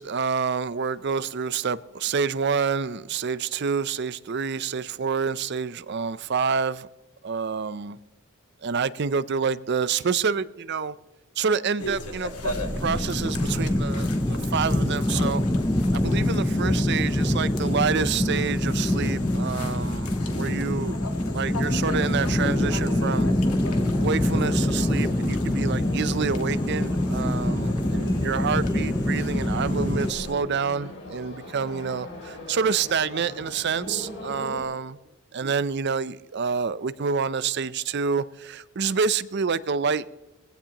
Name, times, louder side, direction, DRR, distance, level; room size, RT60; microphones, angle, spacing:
voice 1, 0.0-6.9 7.2-8.0 8.6-11.0 11.4-12.5 12.8-15.4 15.9-21.0 21.3-23.3 24.0-35.0 35.3-40.0, right 5 dB, 50° right, 0.5 m, -28 dB
sound 1, 11.8-30.3, left 2 dB, 85° left, 1.6 m, -38 dB
sound 2, 12.4-30.1, left 1 dB, 15° left, 0.5 m, -25 dB
sound 3, 22.1-34.6, left 1 dB, 55° left, 3.0 m, -38 dB
20.0 x 15.5 x 2.9 m
head